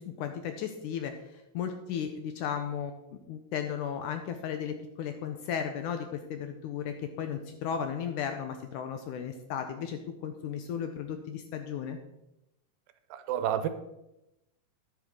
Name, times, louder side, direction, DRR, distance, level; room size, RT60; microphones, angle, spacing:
voice 1, 0.0-12.0, left 8 dB, 80° left, 7 dB, 1.9 m, -35 dB
voice 2, 13.1-13.7, right 10 dB, 80° right, 10 dB, 2.3 m, -29 dB
10.5 x 9.2 x 3.7 m, 0.88 s
omnidirectional pair, 4.1 m